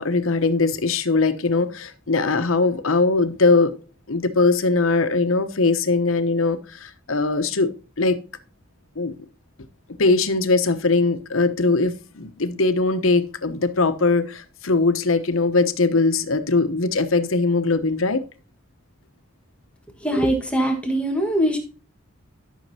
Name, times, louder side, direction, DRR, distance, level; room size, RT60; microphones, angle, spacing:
voice 1, 0.0-3.7 4.1-8.2 9.0-9.1 10.0-18.2, left 3 dB, 90° left, 1.0 m, -21 dB
voice 2, 20.0-21.6, right 1 dB, 5° left, 1.6 m, -22 dB
12.5 x 6.5 x 2.8 m
head